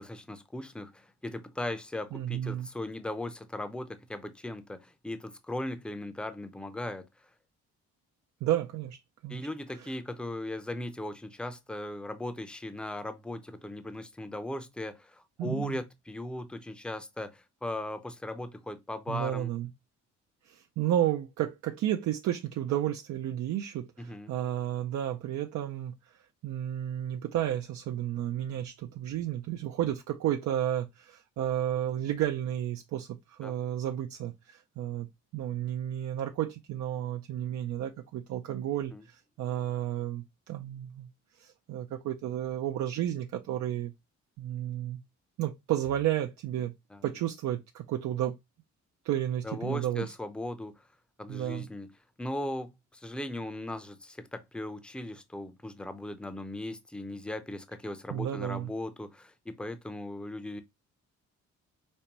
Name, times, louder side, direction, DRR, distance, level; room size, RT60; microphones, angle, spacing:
voice 1, 0.0-7.0 9.3-19.5 24.0-24.3 33.4-33.5 38.9-39.0 46.9-47.0 49.4-50.9 51.2-51.9 52.2-60.6, left 1 dB, 5° left, 0.6 m, -38 dB
voice 2, 2.1-2.7 8.4-9.5 9.7-9.9 15.4-15.8 19.1-19.7 20.5-35.1 35.3-41.1 41.4-43.9 44.4-45.0 45.4-46.7 47.0-48.4 49.0-50.1 51.3-51.7 58.1-58.7, right 12 dB, 70° right, 0.5 m, -32 dB
5.3 x 2.2 x 2.9 m
cardioid pair, 90°, 30 cm